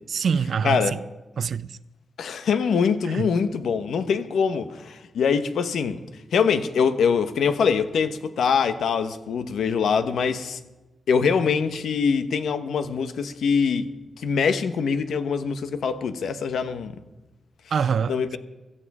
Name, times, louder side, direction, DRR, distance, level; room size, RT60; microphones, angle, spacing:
voice 1, 0.1-1.0 1.4-1.8 3.1-3.3 17.7-18.4, right 6 dB, 65° right, 0.4 m, -25 dB
voice 2, 2.2-6.0 6.3-10.6 11.1-13.9 14.2-17.0 18.1-18.4, left 6 dB, 90° left, 1.0 m, -23 dB
16.5 x 14.0 x 4.9 m
wide cardioid pair, 120°, 0 cm